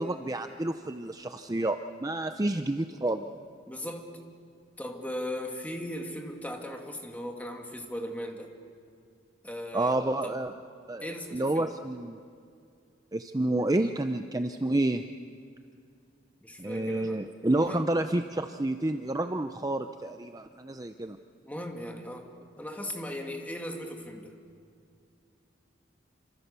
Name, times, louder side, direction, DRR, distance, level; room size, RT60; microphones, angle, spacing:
voice 1, 0.0-3.3 9.7-10.5 10.9-12.2 13.1-15.0 16.6-21.2, right 1 dB, 20° right, 7 dB, 0.6 m, -29 dB
voice 2, 3.7-4.1 4.8-8.5 9.4-10.4 11.0-11.7 16.4-17.2 17.5-17.9 21.4-22.3 22.6-24.3, left 1 dB, 10° left, 2 dB, 2.2 m, -38 dB
28.0 x 26.0 x 6.9 m, 2.3 s
head